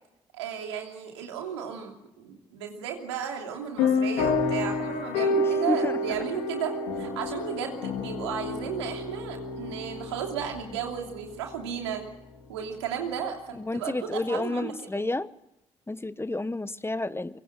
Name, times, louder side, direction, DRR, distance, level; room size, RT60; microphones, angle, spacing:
voice 1, 0.3-12.0 12.5-15.0, right 8 dB, 90° right, 2 dB, 2.9 m, -34 dB
sound 1, 3.8-11.9, left 3 dB, 80° left, 3.7 m, -29 dB
voice 2, 13.7-15.3 15.9-17.4, left 2 dB, 15° left, 15 dB, 1.2 m, -30 dB
24.5 x 24.0 x 7.7 m, 0.87 s
hypercardioid pair, 40°, 14 cm